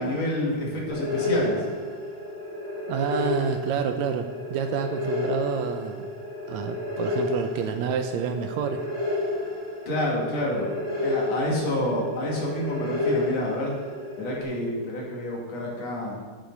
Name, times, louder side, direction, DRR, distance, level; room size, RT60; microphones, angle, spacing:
voice 1, 0.0-1.6 9.9-10.7 11.0-13.7 14.2-16.2, left 1 dB, 60° left, -3 dB, 3.3 m, -28 dB
sound 1, 0.9-14.4, left 2 dB, 40° left, 2.6 m, -31 dB
voice 2, 2.9-6.0 6.5-8.9, right 7 dB, 80° right, 7 dB, 1.7 m, -28 dB
9.9 x 8.3 x 4.7 m, 1.4 s
omnidirectional pair, 3.4 m